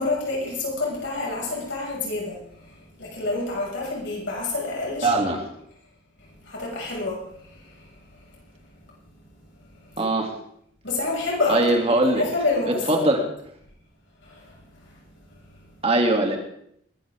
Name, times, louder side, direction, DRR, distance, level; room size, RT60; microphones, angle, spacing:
voice 1, 0.0-5.1 6.2-8.4 9.9-10.1 10.8-13.2 14.2-15.0 15.6-15.8, left 3 dB, 80° left, -4 dB, 6.2 m, -29 dB
voice 2, 5.0-5.4 10.0-10.3 11.5-12.2 12.9-13.2 15.8-16.4, right 2 dB, 35° right, 2 dB, 2.7 m, -20 dB
21.5 x 13.5 x 3.7 m, 0.70 s
head